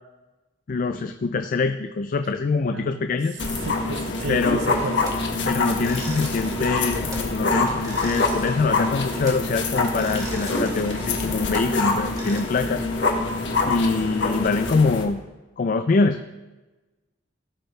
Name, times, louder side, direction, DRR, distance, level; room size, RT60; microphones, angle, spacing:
voice 1, 0.7-3.4 4.3-4.7 5.5-12.9 13.6-15.2 15.6-16.2, left 4 dB, 45° left, 8 dB, 0.4 m, -24 dB
voice 2, 2.7-3.0 3.6-5.2, right 3 dB, 85° right, 9 dB, 0.6 m, -33 dB
sound 1, 3.4-15.0, left 3 dB, 75° left, 1.5 m, -25 dB
sound 2, 4.7-5.3 5.7-7.3 7.6-9.5 9.8-12.4, right 1 dB, 20° right, 1.8 m, -38 dB
16.5 x 6.6 x 3.2 m, 1.1 s
head